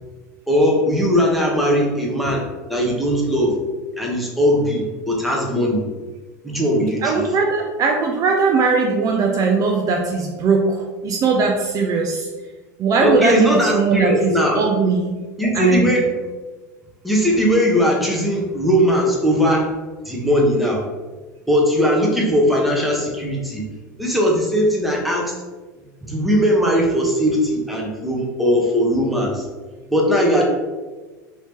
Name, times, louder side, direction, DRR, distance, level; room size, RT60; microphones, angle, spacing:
voice 1, 0.5-3.5 4.0-5.9 6.4-7.2 13.0-14.6 15.4-16.2 17.0-19.7 20.0-20.9 21.5-23.7 24.0-25.3 26.0-29.5 29.9-30.4, equal, ahead, -2 dB, 0.9 m, -19 dB
voice 2, 7.0-12.3 12.8-14.3 14.6-15.2 15.5-15.9, right 4 dB, 40° right, 1 dB, 0.4 m, -19 dB
2.9 x 2.8 x 3.4 m, 1.3 s
hypercardioid pair, 90°, 10 cm